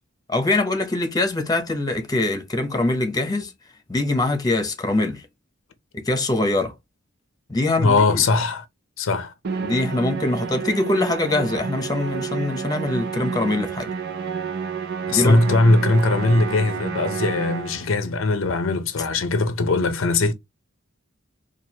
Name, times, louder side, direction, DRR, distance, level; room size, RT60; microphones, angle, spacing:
voice 1, 0.3-3.5 3.9-5.3 5.9-6.7 7.5-8.2 9.6-13.9 15.1-15.4, left 2 dB, 20° left, 0.8 m, -23 dB
voice 2, 7.8-8.6 9.0-9.3 15.1-20.3, left 2 dB, 75° left, 0.6 m, -20 dB
Musical instrument, 9.4-18.0, right 6 dB, 50° right, 0.6 m, -29 dB
4.6 x 2.5 x 2.8 m
head